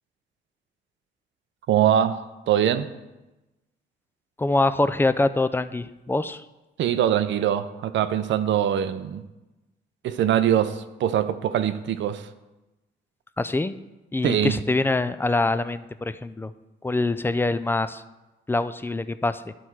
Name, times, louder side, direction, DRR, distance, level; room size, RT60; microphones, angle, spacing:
voice 1, 1.7-2.2 2.5-2.9 6.8-9.2 10.0-12.3 14.2-14.5, right 10 dB, 70° right, 0.6 m, -23 dB
voice 2, 4.4-6.4 13.4-13.7 14.1-16.5 16.8-18.0 18.5-19.5, left 2 dB, 10° left, 0.3 m, -24 dB
11.5 x 4.3 x 4.6 m
cardioid pair, 90°, 20 cm